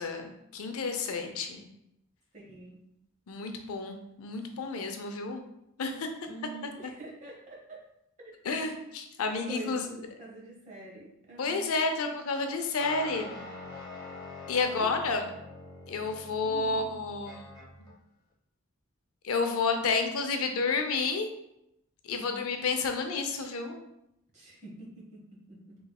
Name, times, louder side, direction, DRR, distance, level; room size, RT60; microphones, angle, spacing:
voice 1, 0.0-1.7 3.3-5.4 5.8-6.1 8.4-9.8 11.4-13.3 14.5-15.2 15.9-17.5 19.2-21.3 22.0-23.8, left 4 dB, 90° left, 5 dB, 0.5 m, -30 dB
voice 2, 2.3-2.8 6.2-7.8 8.2-8.4 9.4-11.7 14.6-14.9 16.4-16.8 22.1-22.5 24.3-25.8, right 2 dB, 35° right, -3 dB, 1.0 m, -46 dB
sound 1, 12.8-17.9, left 2 dB, 20° left, 1.1 m, -44 dB
4.1 x 3.1 x 2.3 m, 0.82 s
head